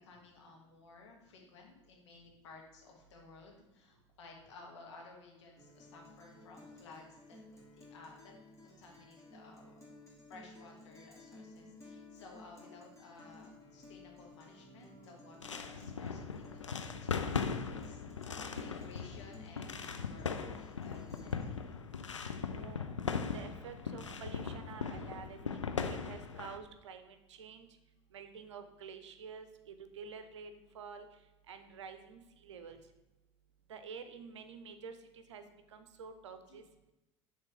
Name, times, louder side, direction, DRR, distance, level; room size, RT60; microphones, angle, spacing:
voice 1, 0.0-8.3 8.6-9.7 10.3-21.9 36.5-36.6, left 3 dB, 70° left, 0 dB, 1.5 m, -56 dB
Guitar, 5.6-21.6, left 2 dB, 20° left, 2.3 m, -56 dB
sound 1, 15.4-26.6, left 5 dB, 90° left, 0.4 m, -39 dB
voice 2, 22.5-22.9 23.3-27.7 28.1-31.1 31.5-32.8 33.7-36.6, right 6 dB, 75° right, 9 dB, 0.6 m, -49 dB
6.7 x 3.2 x 5.8 m, 0.97 s
figure-of-eight pair, 70°, 15 cm